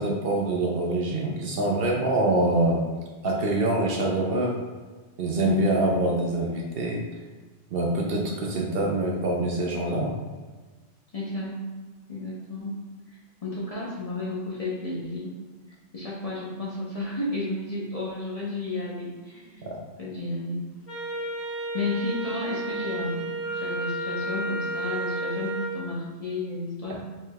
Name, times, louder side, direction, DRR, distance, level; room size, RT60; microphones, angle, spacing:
voice 1, 0.0-2.8 3.2-4.6 5.2-7.0 7.7-10.1 19.7-19.8, right 2 dB, 60° right, -1 dB, 0.7 m, -25 dB
voice 2, 5.4-5.8 11.1-11.5 12.1-12.7 13.4-15.3 15.9-20.6 21.7-27.0, left 2 dB, 40° left, -6 dB, 0.7 m, -32 dB
Wind instrument woodwind instrument, 20.9-25.8, right 1 dB, 55° left, 1.3 m, -31 dB
4.6 x 3.4 x 2.2 m, 1.3 s
omnidirectional pair, 1.2 m